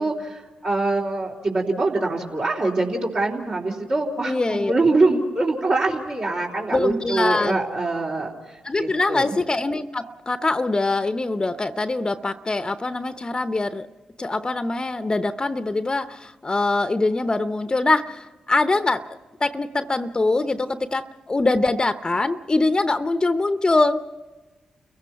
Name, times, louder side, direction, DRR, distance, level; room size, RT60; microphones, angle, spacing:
voice 1, 0.0-9.4, right 2 dB, 60° right, -5 dB, 3.4 m, -24 dB
voice 2, 4.2-4.7 6.7-7.6 8.6-13.9 14.2-19.1 19.4-24.0, left 2 dB, 30° left, 11 dB, 0.7 m, -23 dB
29.0 x 16.5 x 5.8 m, 1.2 s
hypercardioid pair, 40°, 3 cm